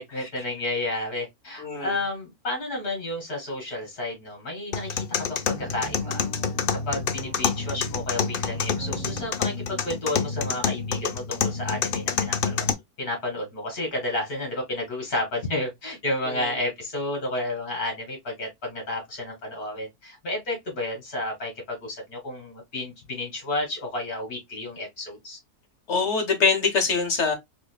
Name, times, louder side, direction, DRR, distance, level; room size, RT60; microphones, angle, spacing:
voice 1, 0.0-6.2 6.7-25.4, left 1 dB, 75° left, 3.0 m, -31 dB
voice 2, 1.6-2.0 16.3-16.5 25.9-27.3, left 4 dB, 50° left, 1.3 m, -24 dB
sound 1, 4.7-12.7, left 6 dB, 90° left, 0.4 m, -28 dB
sound 2, 5.5-9.3, right 5 dB, 60° right, 1.5 m, -41 dB
4.8 x 2.9 x 2.3 m
omnidirectional pair, 1.6 m